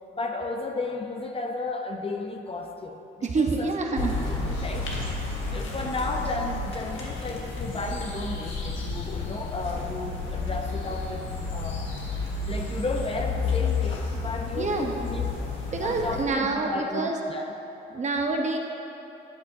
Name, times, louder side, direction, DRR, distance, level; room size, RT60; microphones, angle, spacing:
voice 1, 0.1-3.7 4.2-11.8 12.2-15.3 15.8-17.5, left 3 dB, 30° left, 3 dB, 0.8 m, -34 dB
voice 2, 3.2-4.2 14.5-14.9 15.7-17.2 17.9-18.6, right 3 dB, 35° right, 2 dB, 1.0 m, -27 dB
sound 1, 4.0-16.2, left 3 dB, 80° left, 1.6 m, -31 dB
13.0 x 8.3 x 2.7 m, 3.0 s
cardioid pair, 90°, 20 cm